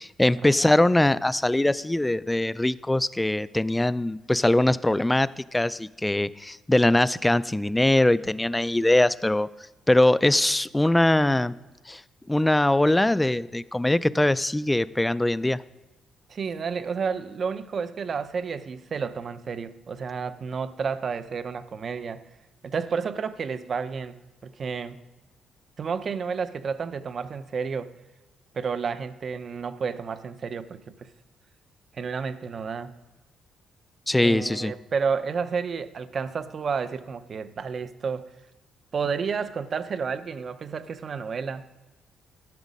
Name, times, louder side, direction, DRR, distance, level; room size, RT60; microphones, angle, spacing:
voice 1, 0.2-9.5 9.9-11.5 11.9-12.0 12.3-15.6 34.1-34.7, left 1 dB, 10° left, 0.3 m, -22 dB
voice 2, 16.3-22.2 22.6-25.0 25.8-27.9 28.5-31.1 31.9-32.9 34.2-38.2 38.9-41.7, right 5 dB, 45° right, 0.6 m, -31 dB
12.0 x 7.2 x 5.3 m
cardioid pair, 90°, 0 cm